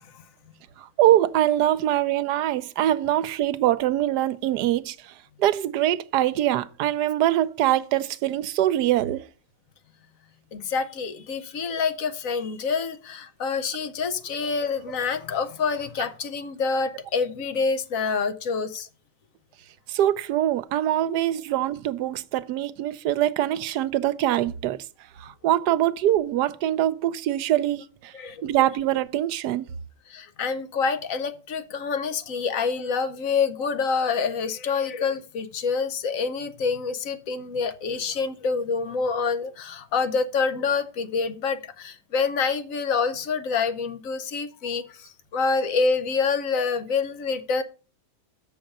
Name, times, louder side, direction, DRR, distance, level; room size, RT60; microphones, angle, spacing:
voice 1, 0.8-5.0 5.4-9.3 19.9-24.8 25.2-28.1 28.4-29.7, right 13 dB, 85° right, 1.2 m, -23 dB
voice 2, 10.5-18.9 28.1-28.4 30.1-47.6, left 5 dB, 60° left, 1.1 m, -27 dB
7.1 x 5.1 x 6.6 m
omnidirectional pair, 1.8 m